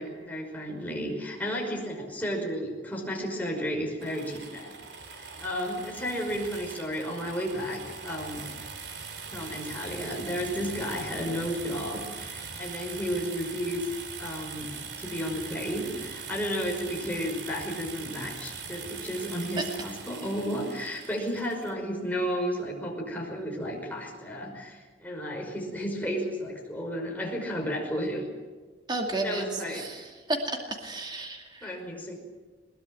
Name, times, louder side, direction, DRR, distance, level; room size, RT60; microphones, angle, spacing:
voice 1, 0.0-4.7 5.1-8.5 9.3-13.9 14.2-28.3 29.1-29.9 31.6-32.1, equal, 10° left, -1 dB, 5.5 m, -33 dB
sound 1, 4.0-21.7, right 5 dB, 65° right, 2.7 m, -41 dB
voice 2, 28.9-31.7, right 2 dB, 25° right, 2 dB, 2.4 m, -32 dB
21.5 x 21.0 x 9.1 m, 1.4 s
head